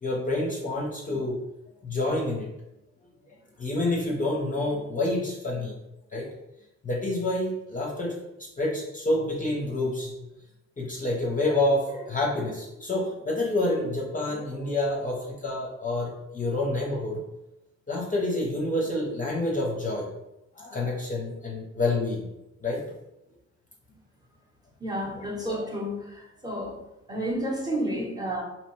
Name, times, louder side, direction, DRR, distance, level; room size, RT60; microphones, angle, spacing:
voice 1, 0.0-1.4 1.8-2.5 3.6-5.7 6.1-6.3 6.8-8.2 8.6-10.3 10.8-17.2 17.9-20.1 20.6-22.3 22.6-22.8 25.0-25.1, left 2 dB, 25° left, -3 dB, 0.6 m, -28 dB
voice 2, 24.8-26.8 27.1-28.4, equal, 15° right, -2 dB, 0.8 m, -31 dB
2.8 x 2.1 x 3.0 m, 0.91 s
cardioid pair, 90°, 30 cm